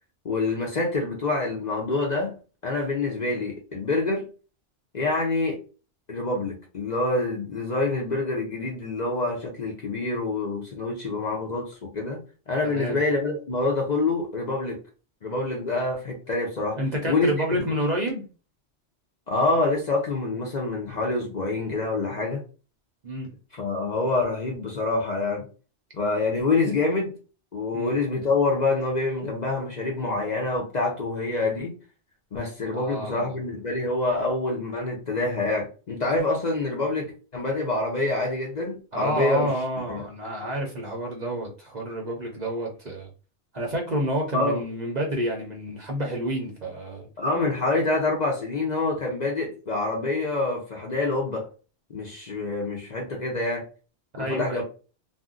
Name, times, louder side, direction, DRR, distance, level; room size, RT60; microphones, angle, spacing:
voice 1, 0.2-2.3 2.6-4.2 4.9-5.6 6.1-12.2 12.5-14.8 15.2-16.8 17.0-17.3 19.3-22.4 23.5-25.4 25.9-27.1 27.5-31.7 32.3-39.5 39.9-40.0 44.3-44.6 47.2-51.5 51.9-53.6 54.2-54.6, left 3 dB, 45° left, 0.6 m, -26 dB
voice 2, 12.6-13.0 16.8-18.2 23.0-23.3 27.7-27.9 32.7-33.4 38.9-43.1 43.5-47.1 54.1-54.6, right 1 dB, 45° right, 0.6 m, -29 dB
2.5 x 2.1 x 3.6 m
omnidirectional pair, 1.2 m